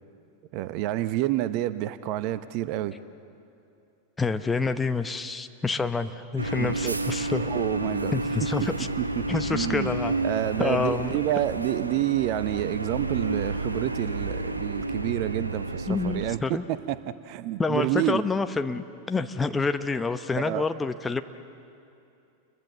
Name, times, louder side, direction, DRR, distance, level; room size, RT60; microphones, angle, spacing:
voice 1, 0.5-2.9 6.6-7.0 7.4-8.1 9.0-9.2 9.5-9.9 10.2-17.0 17.2-18.3 20.4-20.7, right 14 dB, 45° right, 14 dB, 0.8 m, -28 dB
voice 2, 4.2-7.5 8.1-8.9 9.3-10.1 10.6-11.1 15.9-16.6 17.6-21.2, left 4 dB, 10° left, 9 dB, 0.9 m, -28 dB
sound 1, 6.4-16.4, right 2 dB, 80° right, 1.2 m, -31 dB
29.0 x 22.5 x 7.3 m, 2.7 s
figure-of-eight pair, 90°, 0 cm